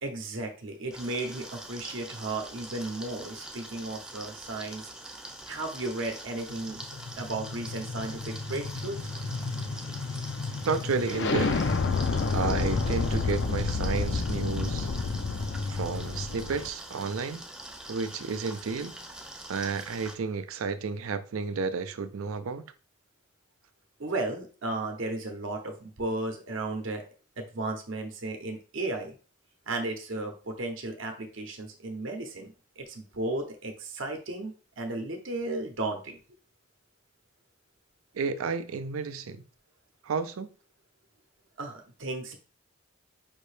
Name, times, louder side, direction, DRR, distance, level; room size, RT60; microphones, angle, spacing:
voice 1, 0.0-4.9 5.5-6.8 7.2-9.1 24.0-27.0 27.4-29.1 29.7-36.2 41.6-42.4, right 2 dB, 65° right, 0.8 m, -34 dB
sound 1, 0.9-20.1, right 1 dB, 5° right, 0.4 m, -44 dB
sound 2, 6.5-16.7, left 4 dB, 60° left, 0.4 m, -30 dB
voice 2, 10.6-11.5 12.3-14.9 15.6-17.4 17.9-18.9 19.5-22.6 38.1-39.4 40.0-40.5, right 5 dB, 85° right, 0.5 m, -31 dB
5.2 x 2.7 x 3.2 m
head